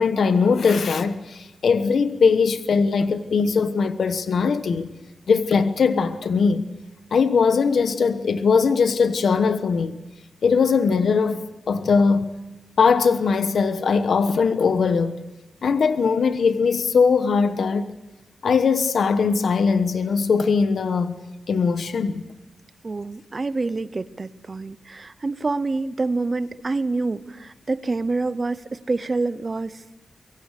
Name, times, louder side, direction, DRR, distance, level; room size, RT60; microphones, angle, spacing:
voice 1, 0.0-4.9 5.3-6.7 7.1-10.0 10.4-11.4 11.7-12.4 12.8-15.1 15.6-17.9 18.4-21.1 21.5-22.2, left 5 dB, 80° left, 1.1 m, -20 dB
voice 2, 22.8-29.8, right 3 dB, 30° right, 0.8 m, -27 dB
24.0 x 23.5 x 6.6 m
wide cardioid pair, 165°, 0 cm